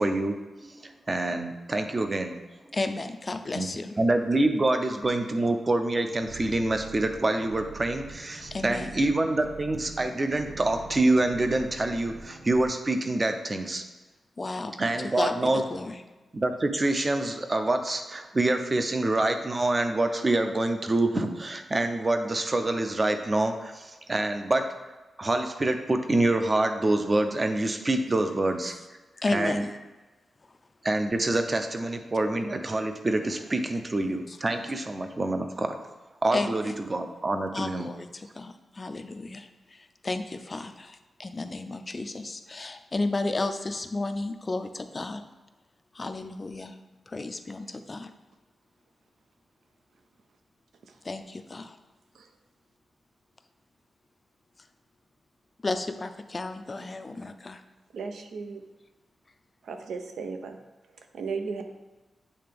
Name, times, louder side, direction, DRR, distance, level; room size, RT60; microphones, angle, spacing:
voice 1, 0.0-2.4 3.5-3.7 4.0-13.8 14.8-15.6 16.3-24.7 25.2-28.7 29.3-29.6 30.8-35.8 36.2-37.9, right 2 dB, 25° right, 7 dB, 0.5 m, -26 dB
voice 2, 2.7-3.9 8.5-8.9 14.4-14.7 15.2-16.0 29.2-29.8 34.3-34.4 36.3-36.6 37.5-45.2 45.9-46.7 47.1-48.1 51.0-51.8 55.6-57.6, left 2 dB, 25° left, 8 dB, 0.4 m, -33 dB
sound 1, 6.2-12.7, right 3 dB, 45° right, 1.6 m, -45 dB
voice 3, 57.9-58.6 59.6-60.6 60.9-61.6, right 5 dB, 90° right, 6 dB, 0.6 m, -36 dB
8.5 x 3.3 x 3.4 m, 1.2 s
wide cardioid pair, 130°, 0 cm